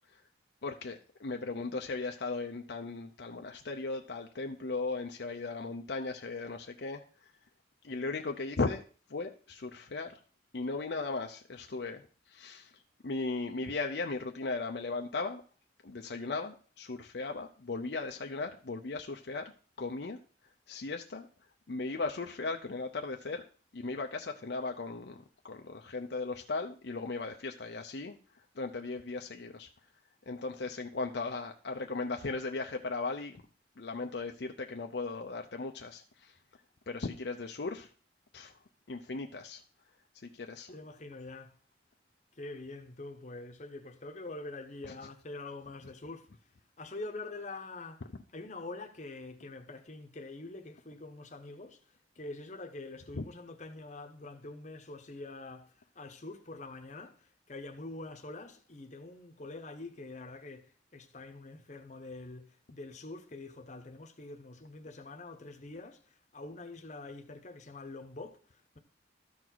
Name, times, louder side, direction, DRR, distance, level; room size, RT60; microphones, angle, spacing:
voice 1, 0.6-7.0 7.8-8.8 9.1-10.1 10.5-12.0 12.3-12.7 13.0-15.4 15.8-19.5 19.8-20.2 20.7-21.3 21.7-23.4 23.7-28.2 28.6-29.7 30.3-33.4 33.8-36.3 36.9-37.9 38.3-38.5 38.9-39.6 40.3-40.7 53.1-53.2, left 3 dB, 60° left, 0.6 m, -37 dB
voice 2, 40.7-41.6 42.4-46.3 46.8-48.1 48.3-68.8, left 2 dB, 40° left, 1.0 m, -45 dB
13.5 x 4.6 x 4.0 m
head